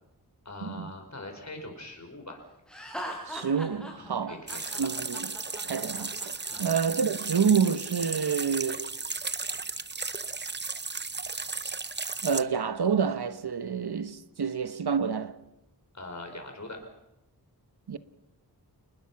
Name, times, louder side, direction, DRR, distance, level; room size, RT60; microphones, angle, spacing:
voice 1, 0.5-2.4 4.0-4.9 6.5-6.7 15.9-16.8, left 2 dB, 45° left, 5.4 m, -42 dB
Laughter, 2.7-6.6, equal, ahead, 7.3 m, -40 dB
voice 2, 3.3-4.4 4.8-5.3 5.6-6.3 6.6-8.9 12.2-15.4 17.9-18.0, right 6 dB, 70° right, 1.1 m, -28 dB
sound 1, 4.5-12.4, right 4 dB, 25° right, 0.8 m, -35 dB
28.5 x 19.5 x 5.8 m
wide cardioid pair, 65°, 40 cm